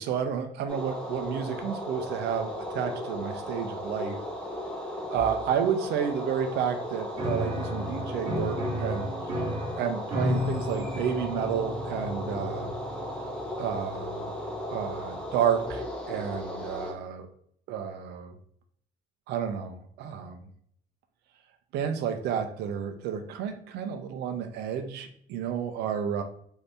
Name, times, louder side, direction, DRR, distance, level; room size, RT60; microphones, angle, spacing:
voice 1, 0.0-4.2 5.1-9.1 9.8-12.7 13.6-14.3 14.7-17.3 17.7-18.3 19.3-20.4 21.7-26.2, right 8 dB, 80° right, 7 dB, 0.5 m, -31 dB
sound 1, 0.7-16.9, equal, 5° left, 0.6 m, -36 dB
Piano, 7.1-15.6, left 1 dB, 35° right, 1.1 m, -34 dB
2.7 x 2.6 x 3.3 m, 0.65 s
cardioid pair, 110°, 17 cm